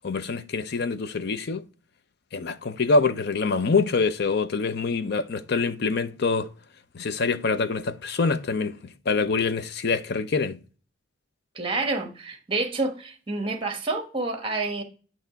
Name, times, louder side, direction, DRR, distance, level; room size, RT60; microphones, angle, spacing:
voice 1, 0.0-1.6 2.3-6.5 6.9-10.6, left 4 dB, 55° left, 0.5 m, -25 dB
voice 2, 11.5-14.8, right 3 dB, 25° right, 1.1 m, -28 dB
9.0 x 3.0 x 4.5 m
head